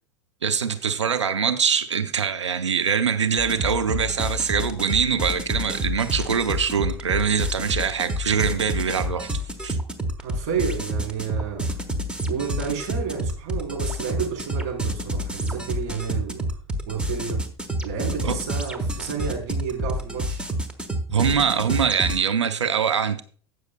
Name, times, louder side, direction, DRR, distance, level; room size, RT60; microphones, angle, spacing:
voice 1, 0.4-9.8 18.2-18.4 21.1-23.2, right 7 dB, 80° right, 0.7 m, -23 dB
sound 1, 3.4-22.2, equal, 5° right, 1.3 m, -29 dB
voice 2, 10.2-11.7 12.3-16.4 16.9-17.4 17.8-20.5, right 6 dB, 50° right, 4.0 m, -30 dB
18.0 x 6.4 x 2.2 m
figure-of-eight pair, 85°, 15 cm